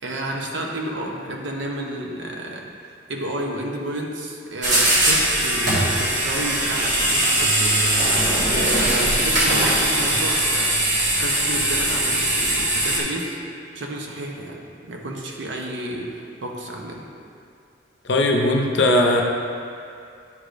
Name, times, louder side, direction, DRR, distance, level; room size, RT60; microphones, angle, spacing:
voice 1, 0.0-2.7 3.1-13.4 13.7-17.1, right 1 dB, 70° right, 0 dB, 0.8 m, -31 dB
sound 1, 4.6-13.0, right 1 dB, 40° right, 1.4 m, -20 dB
voice 2, 18.0-19.2, left 1 dB, 60° left, 2 dB, 0.6 m, -18 dB
9.8 x 5.0 x 2.6 m, 2.4 s
head